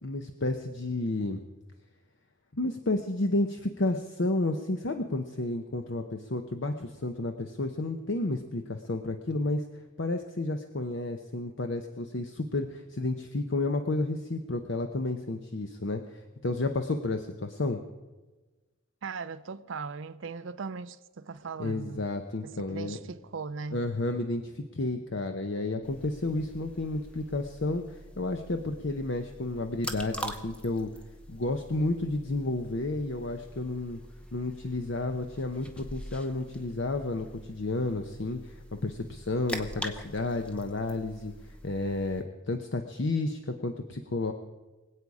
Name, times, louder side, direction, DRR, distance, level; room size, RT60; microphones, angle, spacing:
voice 1, 0.0-1.4 2.5-9.6 10.0-17.8 21.6-23.0 23.7-30.9 31.3-34.0 34.3-41.3 41.6-44.3, left 2 dB, 60° left, 0.8 m, -31 dB
voice 2, 19.0-22.0 22.4-23.8, right 4 dB, 65° right, 0.5 m, -39 dB
sound 1, 25.8-42.2, equal, 5° left, 0.7 m, -44 dB
23.0 x 8.5 x 4.9 m
head